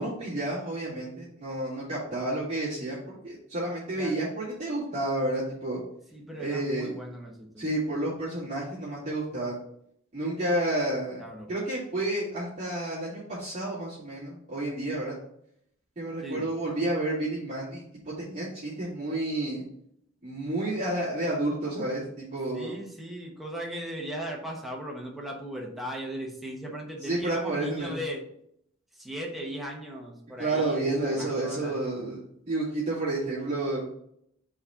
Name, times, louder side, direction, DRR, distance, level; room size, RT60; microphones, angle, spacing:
voice 1, 0.0-5.8 6.4-6.9 7.6-9.6 10.1-11.2 11.5-15.2 16.0-19.6 20.2-22.7 27.0-27.9 30.4-32.2 32.5-33.8, right 1 dB, 35° right, -11 dB, 2.5 m, -30 dB
voice 2, 6.1-7.6 11.2-11.5 16.2-16.4 22.5-28.2 28.9-31.7, equal, ahead, -2 dB, 1.1 m, -37 dB
4.8 x 4.2 x 5.5 m, 0.71 s
head